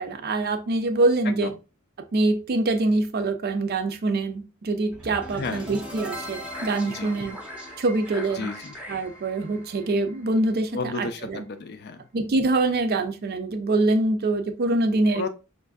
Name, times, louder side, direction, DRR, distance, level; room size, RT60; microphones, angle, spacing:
voice 1, 0.0-1.5 2.1-7.4 7.8-8.5 8.9-11.4 12.1-15.3, right 2 dB, 45° right, 0.5 m, -24 dB
sound 1, 4.9-11.0, equal, 5° right, 0.7 m, -39 dB
voice 2, 5.3-5.7 6.8-7.1 8.3-8.8 10.7-12.1 15.1-15.3, left 4 dB, 50° left, 0.4 m, -33 dB
5.1 x 2.5 x 2.3 m
head